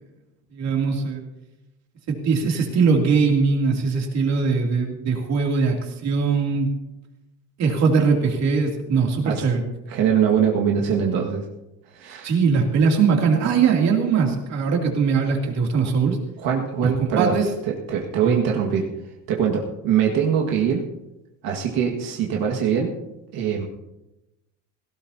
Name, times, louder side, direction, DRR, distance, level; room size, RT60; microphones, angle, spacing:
voice 1, 0.5-1.2 2.1-6.7 7.6-9.6 12.2-16.2 16.8-16.9 17.2-17.4 18.2-18.4, right 5 dB, 55° right, 1 dB, 2.9 m, -21 dB
voice 2, 9.9-11.4 11.9-12.3 16.4-17.3 17.7-18.9 19.3-20.8 21.4-22.9 23.3-23.6, right 7 dB, 85° right, 0 dB, 1.9 m, -22 dB
17.5 x 17.0 x 2.8 m, 0.95 s
cardioid pair, 160°, 33 cm